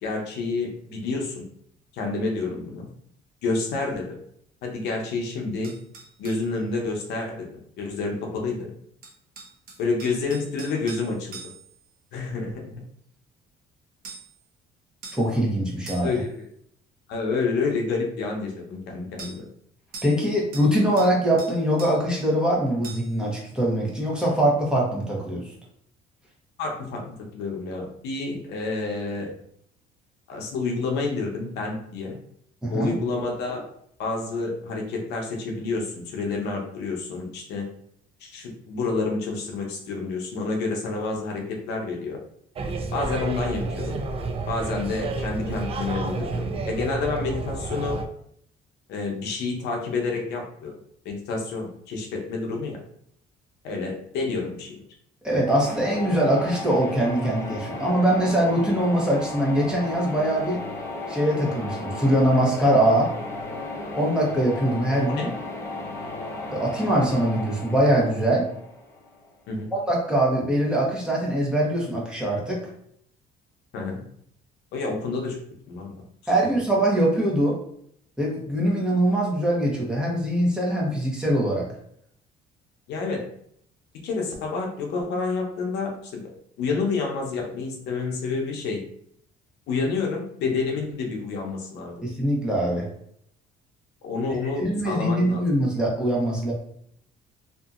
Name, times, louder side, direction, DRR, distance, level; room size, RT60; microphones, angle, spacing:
voice 1, 0.0-1.4 1.9-2.9 3.4-4.2 4.6-5.7 6.2-7.5 7.8-8.7 9.8-11.4 12.1-12.8 16.0-16.5 17.1-19.4 26.6-27.1 27.3-29.3 30.3-32.2 32.7-33.6 34.0-37.7 38.2-42.2 42.9-44.0 44.5-48.0 48.9-50.7 51.0-52.8 53.6-54.8 65.1-65.3 69.5-69.7 73.7-74.0 74.7-75.4 75.7-76.0 76.2-76.3 82.9-83.2 84.0-86.2 86.6-88.8 89.7-92.0 94.0-95.5, left 3 dB, 80° left, 1 dB, 0.7 m, -29 dB
sound 1, 5.6-6.5 9.0-11.8 14.0-14.4 15.0-15.3 15.9-16.3 19.2-19.4 19.9-20.2 20.5-21.1 21.4-22.0 22.8-23.2, right 4 dB, 60° right, 0.8 m, -42 dB
voice 2, 15.1-16.1 20.0-25.4 32.6-32.9 55.2-60.6 61.1-63.1 63.9-65.3 66.5-68.4 69.7-72.6 76.3-77.5 78.2-81.6 92.0-92.8 94.6-96.5, right 1 dB, 5° right, -4 dB, 1.0 m, -22 dB
sound 2, 42.6-48.0, right 3 dB, 35° right, 0.4 m, -30 dB
sound 3, 55.5-69.3, left 2 dB, 15° left, 0.6 m, -34 dB
2.7 x 2.6 x 2.4 m, 0.67 s
cardioid pair, 110°, 17 cm